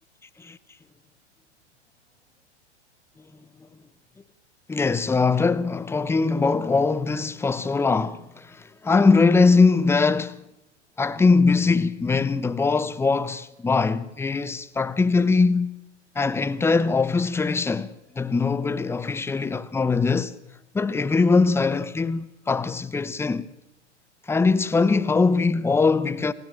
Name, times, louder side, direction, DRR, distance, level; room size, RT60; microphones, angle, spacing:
voice 1, 4.7-10.4 11.0-15.7 16.1-20.3 20.7-23.5 24.3-26.3, left 4 dB, 5° left, 0.9 m, -21 dB
27.0 x 16.5 x 8.9 m
figure-of-eight pair, 105°, 36 cm